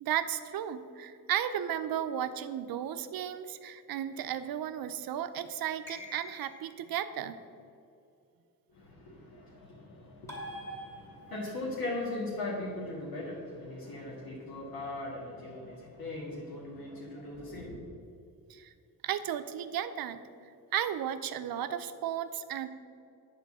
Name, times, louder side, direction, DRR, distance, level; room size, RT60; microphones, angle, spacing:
voice 1, 0.0-7.4 18.5-18.7 19.0-20.2 20.7-22.7, right 10 dB, 75° right, 10 dB, 0.6 m, -34 dB
sound 1, 5.9-6.8 10.3-11.5, equal, 10° left, 2.3 m, -44 dB
voice 2, 8.7-17.8, left 2 dB, 80° left, -5 dB, 2.0 m, -39 dB
9.9 x 4.5 x 7.3 m, 2.5 s
wide cardioid pair, 170°, 35 cm